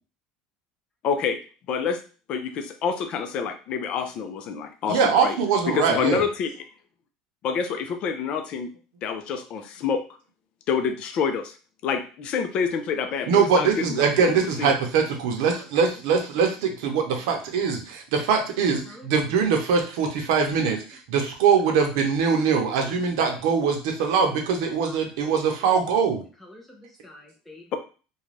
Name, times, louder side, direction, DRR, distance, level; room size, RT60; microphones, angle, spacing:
voice 1, 1.0-1.4 1.7-2.0 2.3-5.4 5.7-6.5 7.4-8.7 9.0-10.0 10.7-11.6 11.8-14.7, left 6 dB, 50° left, 8 dB, 0.5 m, -27 dB
voice 2, 4.9-6.2 13.3-26.2, right 6 dB, 80° right, 3 dB, 0.7 m, -22 dB
voice 3, 19.6-20.1 21.7-21.9 22.3-22.4 22.8-22.9 23.3-23.5 24.2-24.4 24.8-25.4 26.4-27.7, left 1 dB, 5° left, -2 dB, 0.5 m, -47 dB
2.5 x 2.2 x 3.2 m, 0.36 s
supercardioid pair, 120°, 2 cm